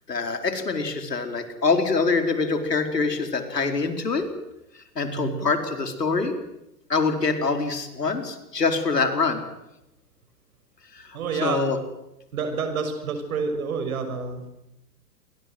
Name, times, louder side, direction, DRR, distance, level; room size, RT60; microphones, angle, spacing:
voice 1, 0.1-4.3 4.7-6.3 6.9-9.4 10.9-11.8, left 4 dB, 80° left, 7 dB, 4.8 m, -25 dB
voice 2, 5.1-5.5 11.1-11.6 12.3-14.5, right 5 dB, 60° right, 8 dB, 6.3 m, -28 dB
29.0 x 24.0 x 8.0 m, 0.89 s
figure-of-eight pair, 105°, 48 cm